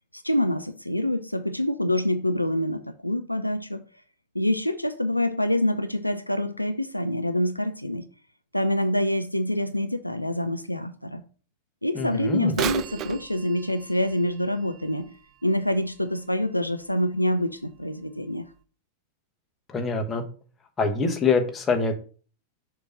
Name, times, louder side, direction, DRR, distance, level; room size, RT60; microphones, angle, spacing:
voice 1, 0.1-3.8 4.4-8.0 8.5-11.2 11.8-15.1 15.4-18.4, left 1 dB, 90° left, 0.4 m, -26 dB
voice 2, 11.9-12.5 19.7-20.2 20.8-21.9, left 4 dB, 20° left, 1.1 m, -24 dB
Bird vocalization bird call bird song / Telephone, 12.5-16.3 16.9-17.0 17.8-17.9 18.5-18.6, right 11 dB, 35° right, 0.4 m, -35 dB
6.7 x 3.0 x 5.5 m
figure-of-eight pair, 90°, 0 cm